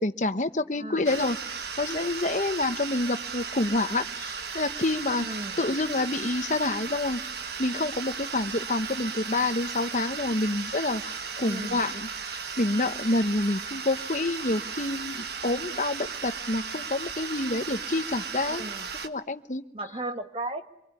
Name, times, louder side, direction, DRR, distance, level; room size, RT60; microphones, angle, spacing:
voice 1, 0.0-1.4 1.8-5.3 5.6-7.2 7.6-18.7 19.0-19.6, left 2 dB, 45° left, 10 dB, 1.0 m, -28 dB
voice 2, 0.7-1.2 5.2-5.6 11.4-11.8 18.6-18.9 19.7-20.6, right 2 dB, 30° right, 7 dB, 1.6 m, -35 dB
sound 1, 1.0-19.1, right 6 dB, 65° right, 1.4 m, -36 dB
25.5 x 23.5 x 9.7 m, 0.85 s
head